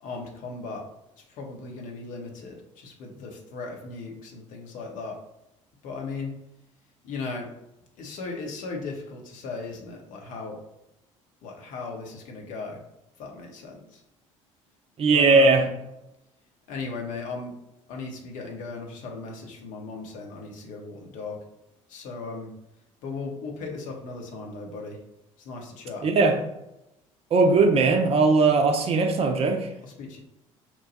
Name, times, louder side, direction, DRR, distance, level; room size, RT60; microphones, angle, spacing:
voice 1, 0.0-0.8 1.2-5.2 5.8-6.3 7.0-7.5 8.0-10.6 11.4-12.8 13.2-14.0 15.1-15.7 16.7-17.5 17.9-21.4 21.9-22.5 23.0-25.0 25.4-26.0 29.8-30.2, left 3 dB, 50° left, 1 dB, 0.8 m, -37 dB
voice 2, 15.0-15.6 26.0-26.4 27.3-29.7, right 3 dB, 35° right, 4 dB, 0.5 m, -19 dB
3.0 x 2.2 x 4.0 m, 0.88 s
figure-of-eight pair, 55°, 17 cm